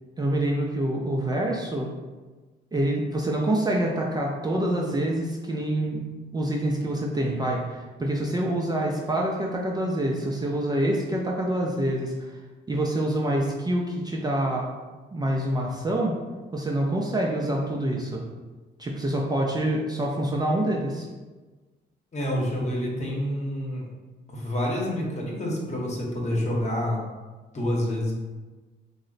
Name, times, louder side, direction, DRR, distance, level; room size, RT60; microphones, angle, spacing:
voice 1, 0.2-1.9 2.7-6.1 6.3-12.1 12.7-14.7 15.1-16.2 16.5-18.2 18.8-21.1, right 1 dB, 20° right, -2 dB, 0.4 m, -26 dB
voice 2, 22.1-23.8 24.3-27.0 27.5-28.1, left 1 dB, 35° left, -2 dB, 0.9 m, -28 dB
3.0 x 2.1 x 3.8 m, 1.3 s
cardioid pair, 90°, 20 cm